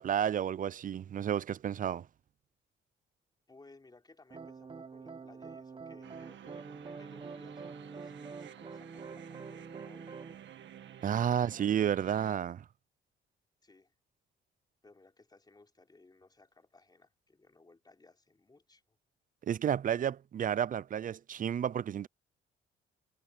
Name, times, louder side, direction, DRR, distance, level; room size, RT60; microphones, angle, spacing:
voice 1, 0.0-2.1 11.0-12.7 19.4-22.1, right 9 dB, 40° right, 0.5 m, -31 dB
voice 2, 3.5-10.2 11.1-11.7 13.6-13.9 14.8-19.0, left 3 dB, 20° left, 3.9 m, -60 dB
sound 1, 4.3-10.4, right 4 dB, 25° right, 1.0 m, -46 dB
sound 2, 6.0-12.3, right 10 dB, 65° right, 1.9 m, -51 dB
cardioid pair, 90°, 20 cm